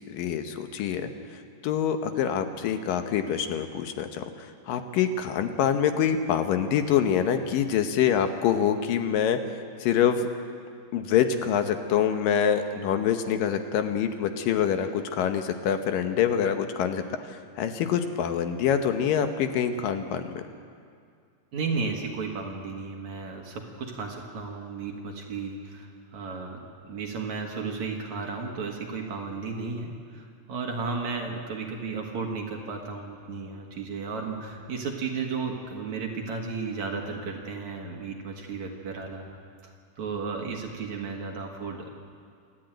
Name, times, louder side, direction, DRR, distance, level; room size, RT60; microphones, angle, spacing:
voice 1, 0.1-1.1 1.6-4.3 4.7-9.4 9.8-10.3 10.9-20.4, left 8 dB, 70° left, 7 dB, 2.4 m, -25 dB
voice 2, 21.5-39.4 39.6-41.9, right 4 dB, 55° right, 1 dB, 2.5 m, -34 dB
28.0 x 12.0 x 9.1 m, 2.2 s
omnidirectional pair, 4.6 m